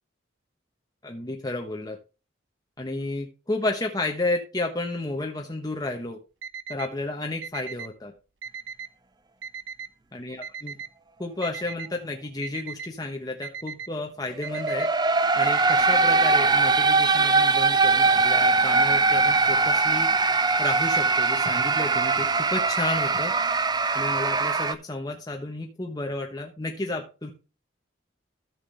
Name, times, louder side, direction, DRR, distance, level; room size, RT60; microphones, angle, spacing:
voice 1, 1.0-2.0 2.8-6.2 6.7-8.1 10.1-10.8 11.2-14.9 15.4-20.1 20.6-23.3 23.9-27.3, left 2 dB, 20° left, 2 dB, 1.0 m, -32 dB
Alarm, 6.4-6.9 7.4-7.9 8.4-8.9 9.4-9.9 10.4-10.9 11.4-11.9 12.4-12.9 13.4-13.9 14.4-14.9 15.4-16.0, right 6 dB, 70° right, 0.8 m, -37 dB
sound 1, 14.4-24.7, right 4 dB, 20° right, 0.5 m, -21 dB
13.5 x 5.9 x 3.3 m, 0.32 s
head